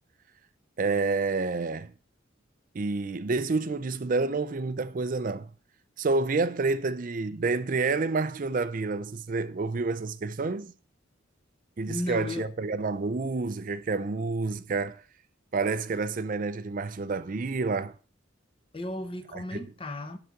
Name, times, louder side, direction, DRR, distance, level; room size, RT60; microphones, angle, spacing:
voice 1, 0.8-1.9 2.7-5.5 6.0-10.7 11.8-15.0 15.5-17.9 19.3-19.6, right 3 dB, 45° right, 0.4 m, -29 dB
voice 2, 11.9-12.5 18.7-20.2, left 2 dB, 25° left, 0.8 m, -35 dB
11.0 x 4.0 x 5.8 m
head